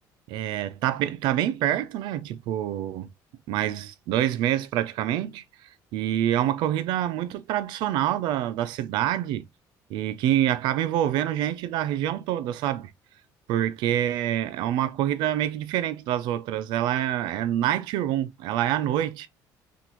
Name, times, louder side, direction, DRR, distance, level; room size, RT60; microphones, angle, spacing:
voice 1, 0.3-3.1 3.5-5.4 5.9-9.4 9.9-12.9 13.5-19.3, right 12 dB, 75° right, 0.5 m, -26 dB
5.9 x 2.5 x 3.0 m
cardioid pair, 180°, 8 cm